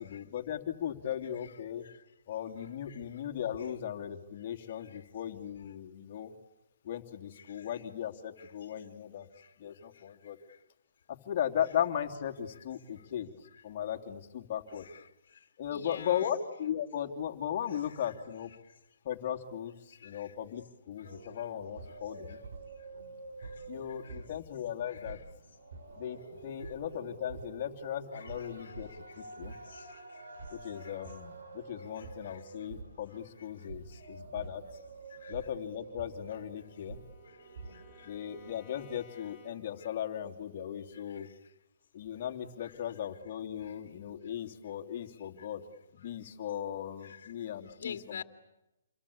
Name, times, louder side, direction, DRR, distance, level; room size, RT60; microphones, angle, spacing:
voice 1, 0.0-1.8 2.3-6.3 6.8-9.3 9.6-10.4 11.1-13.3 13.6-14.9 15.6-18.5 19.0-22.4 23.7-25.2 25.9-28.9 29.2-29.6 30.5-34.6 35.3-37.0 38.0-41.3 41.9-45.6 45.9-48.2, left 10 dB, 40° left, 3 dB, 3.0 m, -37 dB
voice 2, 7.4-7.7 8.4-8.5 9.4-9.5 14.8-15.0 15.7-16.3 20.0-20.3 21.4-21.5 22.3-22.4 23.4-23.5 24.0-24.2 24.9-25.2 26.6-26.7 28.1-28.7 29.7-30.0 30.8-30.9 32.0-32.4 35.2-35.3 37.7-38.1 40.9-41.3 42.6-42.7 43.6-43.7 47.0-47.2 47.8-48.2, left 7 dB, 55° left, 8 dB, 2.4 m, -48 dB
sound 1, 21.0-38.5, right 3 dB, 65° right, 5.4 m, -48 dB
Bowed string instrument, 36.0-39.9, left 2 dB, 20° left, 6.4 m, -60 dB
29.0 x 23.5 x 8.7 m, 0.94 s
hypercardioid pair, 160°, 0 cm